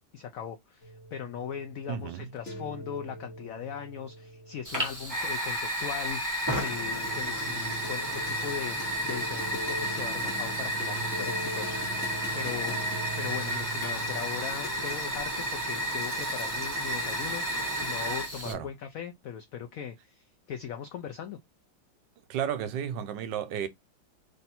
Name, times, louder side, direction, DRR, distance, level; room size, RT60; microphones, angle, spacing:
voice 1, 0.1-8.8 9.0-21.4, left 8 dB, 80° left, 0.7 m, -39 dB
sound 1, 0.8-5.5 6.7-17.1, right 1 dB, 50° left, 1.0 m, -42 dB
voice 2, 1.9-2.3 18.4-18.7 22.3-23.7, right 9 dB, 80° right, 1.2 m, -33 dB
Fire, 4.6-18.5, equal, 15° right, 0.9 m, -32 dB
sound 2, 12.4-17.4, left 2 dB, 20° left, 1.1 m, -52 dB
3.3 x 2.6 x 4.1 m
omnidirectional pair, 2.0 m